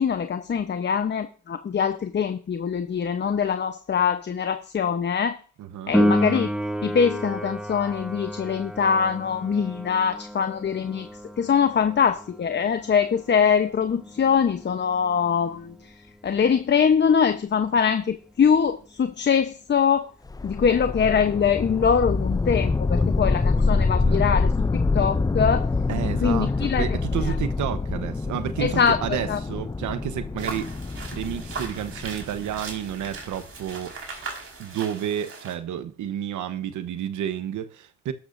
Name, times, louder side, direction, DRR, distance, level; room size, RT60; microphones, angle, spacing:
voice 1, 0.0-5.4 5.9-6.5 6.8-11.1 11.4-15.9 16.2-20.1 20.4-25.7 26.2-27.0 28.6-29.0 29.3-29.4, left 7 dB, 35° left, 0.9 m, -23 dB
voice 2, 5.6-5.9 24.0-24.5 25.9-30.7 31.1-34.0 34.6-38.1, right 10 dB, 75° right, 1.1 m, -31 dB
Piano, 5.9-16.3 23.9-24.0, equal, ahead, 1.2 m, -30 dB
sound 1, 20.3-33.4, left 3 dB, 15° left, 0.4 m, -26 dB
sound 2, 30.4-35.5, right 4 dB, 45° right, 4.8 m, -38 dB
12.5 x 12.5 x 2.6 m
cardioid pair, 90°, 30 cm